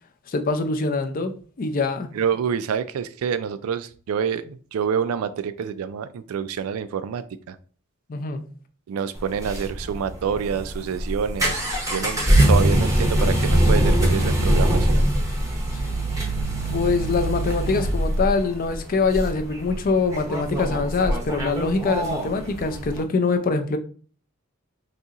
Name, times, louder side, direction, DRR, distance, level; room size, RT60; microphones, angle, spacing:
voice 1, 0.3-1.3 1.6-2.1 8.1-8.5 16.7-23.8, left 4 dB, 40° left, 0.4 m, -24 dB
voice 2, 2.1-7.6 8.9-15.1, right 7 dB, 80° right, 0.3 m, -27 dB
sound 1, 9.2-23.0, right 1 dB, 15° right, 0.7 m, -23 dB
4.0 x 2.7 x 2.4 m
head